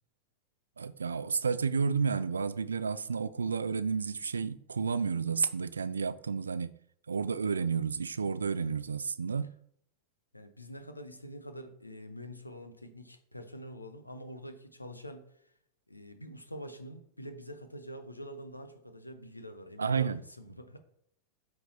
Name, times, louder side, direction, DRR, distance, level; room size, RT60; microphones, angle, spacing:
voice 1, 0.8-6.7 7.1-9.5 19.8-20.2, right 5 dB, 75° right, 0.4 m, -31 dB
voice 2, 10.3-15.5 15.9-20.8, equal, 85° left, 0.9 m, -46 dB
8.5 x 4.6 x 4.0 m
figure-of-eight pair, 90°, 0 cm